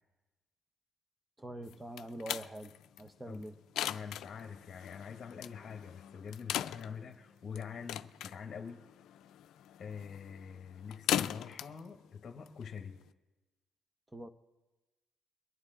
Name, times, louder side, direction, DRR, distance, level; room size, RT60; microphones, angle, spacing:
voice 1, 1.4-2.7 3.0-3.5 14.1-14.3, right 1 dB, 15° right, 11 dB, 0.7 m, -44 dB
sound 1, 1.7-13.1, left 11 dB, 80° left, 0.3 m, -40 dB
voice 2, 3.9-8.8 9.8-13.0, left 6 dB, 50° left, 4 dB, 1.0 m, -45 dB
22.5 x 9.8 x 3.7 m, 1.1 s
cardioid pair, 90°, 0 cm